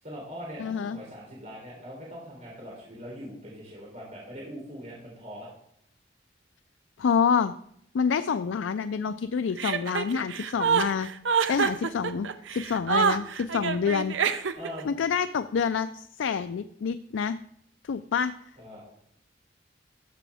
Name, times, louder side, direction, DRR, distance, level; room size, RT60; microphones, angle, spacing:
voice 1, 0.0-5.5 14.5-14.9 18.6-18.8, equal, 40° right, -4 dB, 3.6 m, -41 dB
voice 2, 0.6-1.0 7.0-7.5 7.9-11.1 11.5-14.2 14.8-17.4 17.8-18.3, left 6 dB, 80° left, 11 dB, 0.4 m, -27 dB
Chuckle chortle, 9.6-14.8, right 6 dB, 80° right, 0.7 m, -26 dB
13.5 x 6.8 x 3.5 m, 0.69 s
head